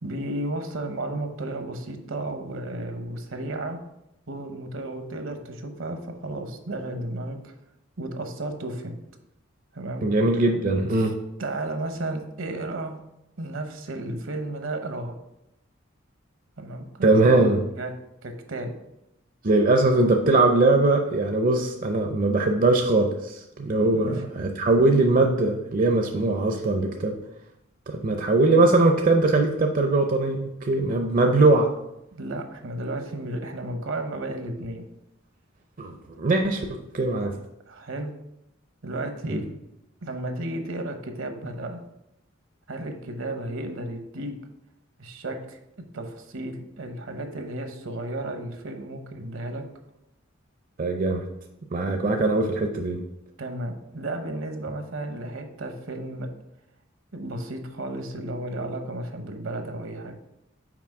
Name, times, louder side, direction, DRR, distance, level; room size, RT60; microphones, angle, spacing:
voice 1, 0.0-3.8 4.3-7.5 8.0-9.0 9.7-10.1 11.0-11.1 11.4-13.0 13.4-15.1 16.6-17.1 17.8-17.9 18.2-18.7 23.9-24.2 32.1-34.8 37.7-38.1 38.8-39.4 40.0-41.8 42.7-44.3 45.0-45.6 45.9-49.6 53.4-56.3 57.1-60.2, right 1 dB, 70° right, 6 dB, 0.9 m, -33 dB
voice 2, 10.0-11.1 17.0-17.6 19.4-27.2 27.9-31.7 35.8-37.3 39.3-39.4 50.8-51.2 51.7-53.0, right 2 dB, 40° right, 3 dB, 0.5 m, -21 dB
6.0 x 4.6 x 4.7 m, 0.86 s
head